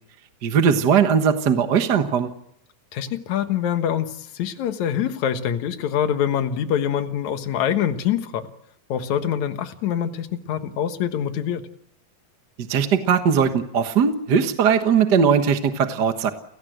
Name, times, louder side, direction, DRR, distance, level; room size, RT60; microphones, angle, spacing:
voice 1, 0.4-2.3 12.7-16.3, right 7 dB, 50° right, 7 dB, 1.3 m, -19 dB
voice 2, 2.9-8.5 8.9-11.7, left 9 dB, 70° left, 8 dB, 2.7 m, -25 dB
29.5 x 18.0 x 8.0 m, 0.75 s
omnidirectional pair, 3.6 m